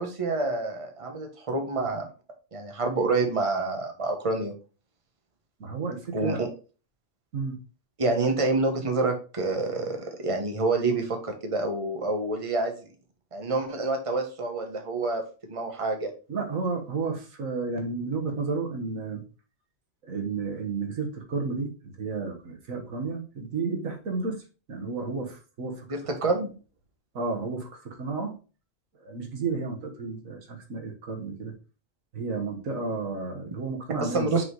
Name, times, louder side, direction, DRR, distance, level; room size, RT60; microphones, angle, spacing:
voice 1, 0.0-2.1 2.5-4.5 6.1-6.5 8.0-12.7 13.3-15.2 15.5-16.1 25.9-26.5 34.0-34.4, right 3 dB, 25° right, 3 dB, 1.3 m, -27 dB
voice 2, 5.6-6.5 7.3-7.6 16.3-19.2 20.0-24.4 24.7-26.3 27.1-28.4 29.0-31.6 32.1-34.4, right 4 dB, 90° right, 3 dB, 1.9 m, -32 dB
5.9 x 4.0 x 4.7 m, 0.34 s
omnidirectional pair, 1.3 m